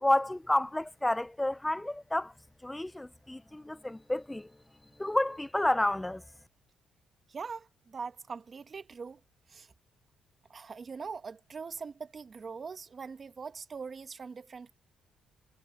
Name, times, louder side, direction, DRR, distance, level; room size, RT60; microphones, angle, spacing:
voice 1, 0.0-2.3 2.6-4.5 5.0-6.2, left 1 dB, 10° left, 0.4 m, -30 dB
voice 2, 7.3-9.2 9.5-9.7 10.5-14.7, right 5 dB, 40° right, 1.7 m, -42 dB
cardioid pair, 90°, 0 cm